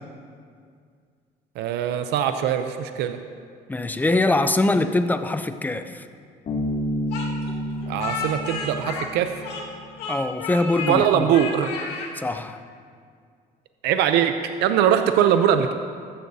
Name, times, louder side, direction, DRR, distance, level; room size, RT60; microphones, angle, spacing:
voice 1, 1.6-3.2 7.9-9.4 10.9-11.7 13.8-15.7, right 9 dB, 85° right, 8 dB, 0.6 m, -21 dB
voice 2, 3.7-6.1 10.1-11.3 12.1-12.6, left 2 dB, 10° left, 10 dB, 0.6 m, -23 dB
Bass guitar, 6.5-9.9, equal, 55° left, 2.4 m, -30 dB
Speech, 7.1-9.7 10.0-11.0 11.3-12.1, left 4 dB, 85° left, 1.9 m, -32 dB
15.0 x 13.5 x 2.8 m, 2.1 s
cardioid pair, 110°, 17 cm